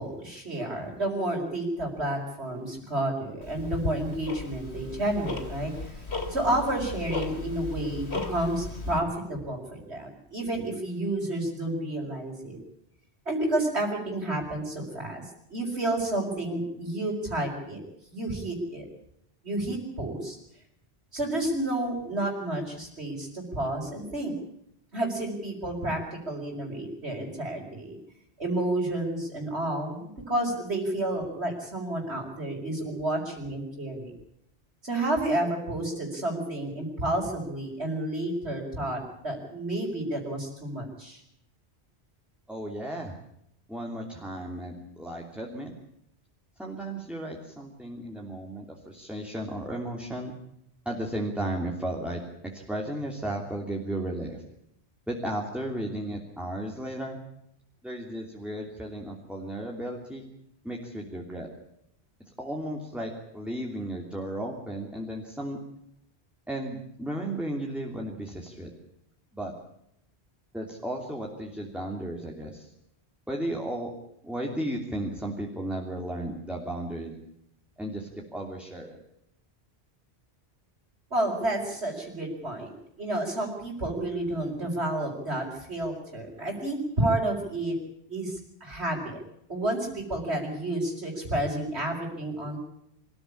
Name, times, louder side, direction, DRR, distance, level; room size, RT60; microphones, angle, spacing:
voice 1, 0.0-12.6 13.3-15.2 15.5-17.8 18.1-18.9 19.4-20.4 21.1-24.3 24.9-28.0 28.4-34.1 34.8-41.2 81.1-87.7 88.1-89.2 89.5-92.6, right 1 dB, 80° right, -5 dB, 5.4 m, -30 dB
Tick-tock, 3.4-9.0, left 3 dB, 80° left, 3.5 m, -36 dB
voice 2, 42.5-43.1 43.7-45.7 46.6-50.3 50.8-54.4 55.1-57.2 57.8-60.2 60.6-61.5 62.4-65.6 66.5-68.7 69.3-69.5 70.5-72.7 73.3-73.9 74.2-77.2 77.8-79.0, right 1 dB, ahead, -1 dB, 3.0 m, -34 dB
26.0 x 15.0 x 8.6 m, 0.77 s
omnidirectional pair, 1.1 m